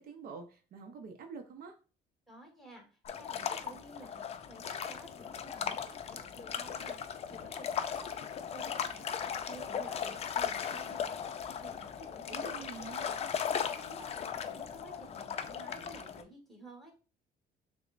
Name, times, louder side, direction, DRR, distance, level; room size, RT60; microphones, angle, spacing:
voice 1, 0.0-1.7 12.3-13.1, right 5 dB, 60° right, 5 dB, 0.6 m, -46 dB
voice 2, 2.3-12.7 13.0-13.1 13.5-16.9, right 1 dB, ahead, 0 dB, 1.5 m, -53 dB
sound 1, 3.1-16.2, left 7 dB, 40° left, 0.4 m, -37 dB
6.1 x 2.1 x 2.5 m, 0.34 s
cardioid pair, 110°, 17 cm